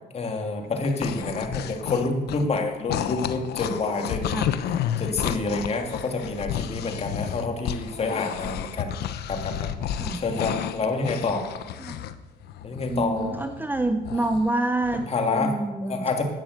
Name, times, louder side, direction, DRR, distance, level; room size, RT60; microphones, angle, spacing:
voice 1, 0.1-4.3 5.0-8.9 9.3-9.7 10.1-11.4 12.6-13.4 15.1-15.5 15.8-16.2, left 3 dB, 40° left, 4 dB, 2.6 m, -28 dB
sound 1, 0.6-2.6 2.9-12.1 12.4-14.5 14.8-15.1, left 10 dB, 75° left, 0.9 m, -31 dB
voice 2, 12.9-15.0 15.3-16.0, right 2 dB, 10° right, 8 dB, 0.8 m, -27 dB
12.0 x 9.4 x 8.1 m, 1.2 s
cardioid pair, 110°, 17 cm